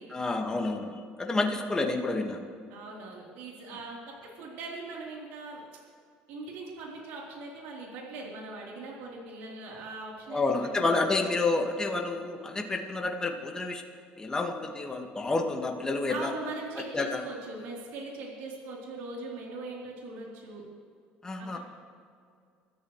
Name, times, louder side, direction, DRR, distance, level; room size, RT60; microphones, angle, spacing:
voice 1, 0.1-2.4 10.3-13.8 14.2-16.3 16.9-17.2 21.2-21.6, left 3 dB, 20° left, 2 dB, 1.9 m, -29 dB
voice 2, 1.5-1.9 2.7-4.0 4.3-5.6 6.3-11.2 16.1-20.6 21.4-21.6, right 3 dB, 75° right, -3 dB, 3.8 m, -41 dB
26.0 x 13.5 x 3.3 m, 2.3 s
supercardioid pair, 95°, 4 cm